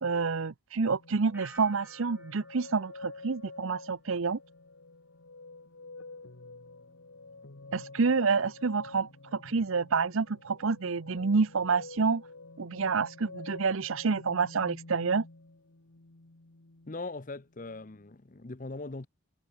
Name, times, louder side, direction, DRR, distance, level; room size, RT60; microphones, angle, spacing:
voice 1, 0.0-4.4 7.7-12.2 12.6-15.3, right 4 dB, 70° right, 0.7 m, -28 dB
sound 1, 0.8-17.1 17.5-18.2, left 3 dB, 75° left, 1.6 m, -49 dB
sound 2, 1.3-4.2 4.5-5.0, right 2 dB, 10° right, 6.0 m, -55 dB
voice 2, 16.9-19.1, left 3 dB, 40° left, 0.8 m, -40 dB
head